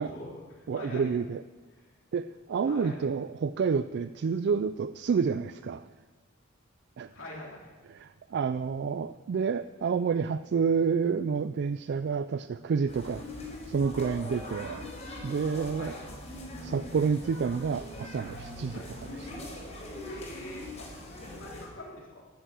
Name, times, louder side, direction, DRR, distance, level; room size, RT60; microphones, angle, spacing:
voice 1, 0.0-1.1 1.7-1.9 2.6-3.1 7.1-7.7 12.6-12.7 15.7-16.0 18.7-18.9 20.0-22.3, left 1 dB, 70° left, -4 dB, 3.5 m, -44 dB
voice 2, 0.7-1.4 2.1-5.9 7.0-7.1 7.9-13.2 13.7-14.9 15.2-16.0 16.6-18.8 19.1-19.6, right 5 dB, 55° right, 13 dB, 0.3 m, -29 dB
sound 1, 12.9-21.7, left 1 dB, 35° left, 4.2 m, -42 dB
11.0 x 10.5 x 7.6 m, 1.3 s
head